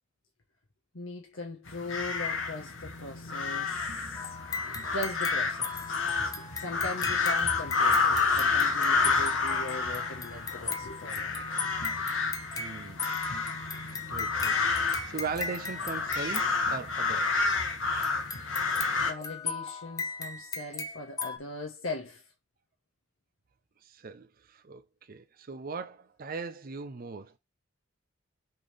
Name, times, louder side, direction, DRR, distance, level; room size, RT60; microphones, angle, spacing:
voice 1, 0.9-4.4 4.6-6.0 6.4-11.7 19.0-22.2, left 2 dB, 85° left, 1.2 m, -40 dB
sound 1, 1.7-19.1, left 4 dB, 70° left, 1.7 m, -30 dB
sound 2, 4.2-17.3 18.0-21.4, left 4 dB, 20° left, 0.8 m, -38 dB
voice 2, 12.6-13.1 14.1-17.5 23.8-27.4, right 4 dB, 45° right, 0.6 m, -39 dB
6.0 x 3.7 x 5.0 m
head